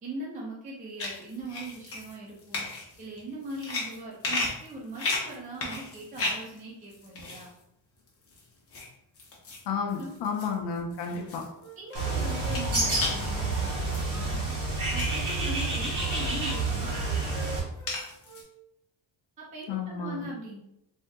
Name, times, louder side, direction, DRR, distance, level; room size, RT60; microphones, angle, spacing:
voice 1, 0.0-2.6 3.0-7.5 9.9-10.2 11.8-14.5 14.9-17.2 19.4-20.6, right 2 dB, 20° right, -3 dB, 0.4 m, -40 dB
sound 1, 1.0-6.6 6.9-7.5 8.1-8.9 9.1-14.4 14.9-15.7 16.3-16.4 16.8-18.4, left 2 dB, 30° left, 0.7 m, -35 dB
voice 2, 9.7-11.5 19.7-20.3, left 5 dB, 65° left, 2 dB, 0.7 m, -32 dB
Wind instrument woodwind instrument, 11.6-14.7 15.0-16.6 16.9-18.0 18.2-18.5, right 1 dB, 70° right, 1.4 m, -46 dB
Bird, 11.9-17.6, right 2 dB, 40° right, 1.0 m, -29 dB
3.5 x 2.7 x 2.2 m, 0.80 s
cardioid pair, 170°, 46 cm